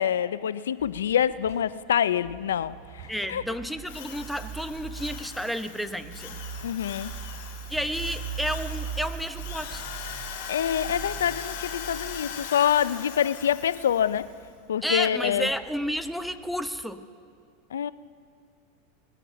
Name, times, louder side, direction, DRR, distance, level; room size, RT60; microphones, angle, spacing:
voice 1, 0.0-3.4 6.6-7.1 10.5-14.3 14.7-15.5 17.7-17.9, left 9 dB, 85° left, 17 dB, 0.3 m, -26 dB
sound 1, 0.8-16.8, right 8 dB, 50° right, 0.9 m, -41 dB
voice 2, 3.1-6.4 7.7-9.8 14.8-17.1, equal, ahead, 10 dB, 0.7 m, -31 dB
Drill, 3.9-14.3, left 8 dB, 65° left, 2.2 m, -40 dB
20.0 x 15.0 x 4.0 m, 2.3 s
hypercardioid pair, 100°, 0 cm